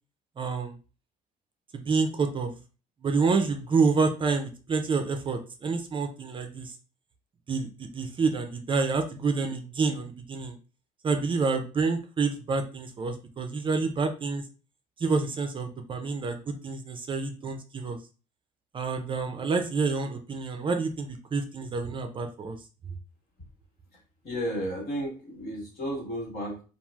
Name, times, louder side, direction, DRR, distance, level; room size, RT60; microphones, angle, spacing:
voice 1, 0.4-0.7 1.7-2.5 3.0-6.7 7.5-10.6 11.0-14.4 15.0-18.0 18.7-22.6, right 4 dB, 30° right, 6 dB, 0.4 m, -28 dB
voice 2, 23.9-26.6, equal, 65° left, -2 dB, 1.5 m, -33 dB
3.1 x 2.4 x 2.3 m, 0.35 s
cardioid pair, 110°, 17 cm